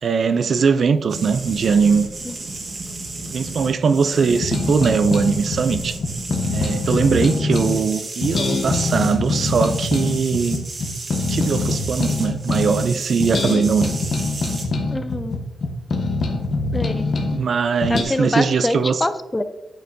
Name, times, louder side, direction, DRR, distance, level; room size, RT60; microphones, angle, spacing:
voice 1, 0.0-2.1 3.3-6.0 6.5-10.6 11.3-13.9 17.3-19.1, right 5 dB, 55° right, 0.4 m, -20 dB
sound 1, 1.1-14.6, right 2 dB, 40° right, 1.4 m, -33 dB
sound 2, 4.3-7.8 8.2-12.9 13.2-17.4 17.8-18.0, left 3 dB, 55° left, 1.1 m, -23 dB
voice 2, 14.9-15.4 16.7-17.1 17.9-19.4, left 2 dB, 15° left, 0.5 m, -24 dB
8.9 x 6.5 x 2.7 m
wide cardioid pair, 125°, 0 cm